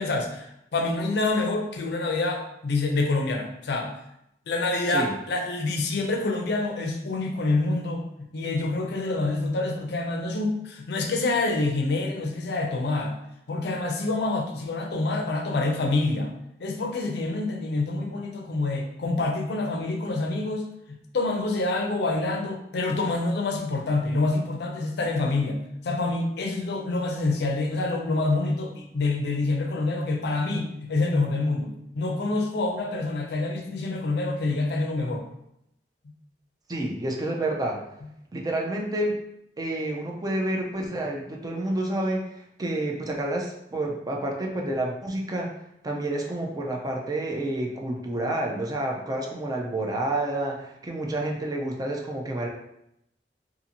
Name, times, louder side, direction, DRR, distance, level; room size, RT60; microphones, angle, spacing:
voice 1, 0.0-3.9 4.5-8.0 8.3-13.2 13.5-16.3 16.6-25.6 25.8-35.2, left 2 dB, 65° left, 3 dB, 0.5 m, -27 dB
voice 2, 36.7-37.8 38.3-39.2 39.6-45.5 45.8-52.5, right 1 dB, 20° right, 0 dB, 0.4 m, -29 dB
2.6 x 2.5 x 2.8 m, 0.79 s
head